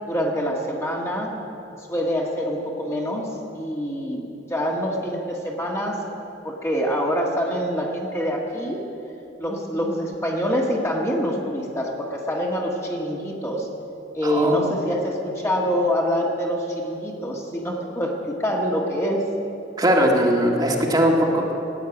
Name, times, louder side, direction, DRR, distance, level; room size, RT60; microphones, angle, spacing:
voice 1, 0.1-1.4 1.9-6.0 6.4-8.8 9.4-13.7 14.1-19.3, equal, 15° left, -1 dB, 1.6 m, -25 dB
voice 2, 14.2-14.7 19.8-21.5, equal, 25° right, -2 dB, 1.8 m, -20 dB
15.5 x 8.7 x 9.9 m, 2.9 s
head